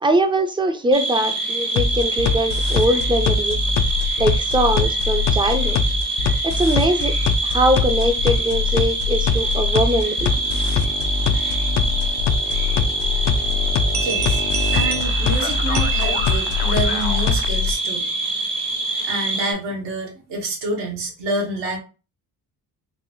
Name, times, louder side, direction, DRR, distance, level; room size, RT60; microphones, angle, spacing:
voice 1, 0.0-3.6 4.2-5.8 6.4-7.2 7.4-10.3, right 1 dB, 10° right, 0.4 m, -21 dB
sound 1, 0.9-19.5, right 2 dB, 70° right, 1.5 m, -25 dB
sound 2, 1.8-17.7, left 5 dB, 75° left, 0.5 m, -22 dB
sound 3, 13.9-16.9, right 11 dB, 45° right, 0.7 m, -29 dB
voice 2, 13.9-14.4 14.7-18.3 19.0-21.8, right 2 dB, 90° right, 1.4 m, -28 dB
4.0 x 2.0 x 3.0 m
cardioid pair, 105°, 40 cm